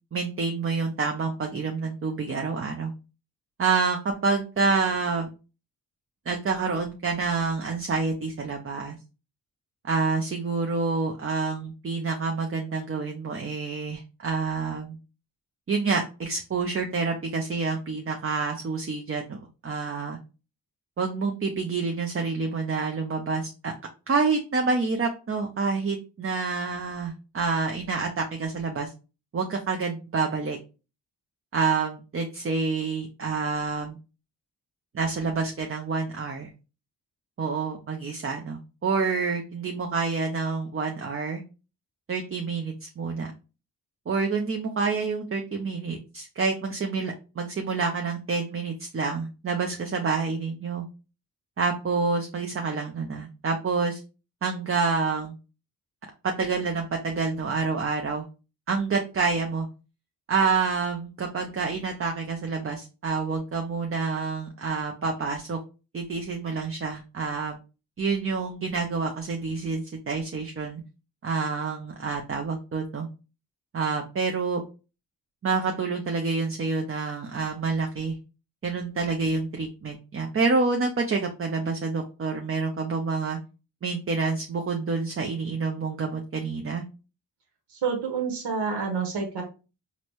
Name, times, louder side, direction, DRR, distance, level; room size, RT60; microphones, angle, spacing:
voice 1, 0.1-2.9 3.6-5.3 6.3-9.0 9.8-15.0 15.7-20.2 21.0-23.7 24.1-28.9 29.3-30.6 31.5-34.0 34.9-36.5 37.4-41.4 42.1-43.3 44.1-50.9 51.6-54.0 54.4-55.3 56.2-58.3 58.7-59.7 60.3-65.6 65.9-67.6 68.0-70.8 71.2-73.1 73.7-74.6 75.4-78.2 78.6-83.4 83.8-86.8, right 4 dB, 30° right, 3 dB, 0.6 m, -28 dB
voice 2, 87.7-89.4, right 5 dB, 70° right, 3 dB, 1.0 m, -28 dB
3.9 x 2.1 x 3.0 m, 0.32 s
cardioid pair, 45°, 42 cm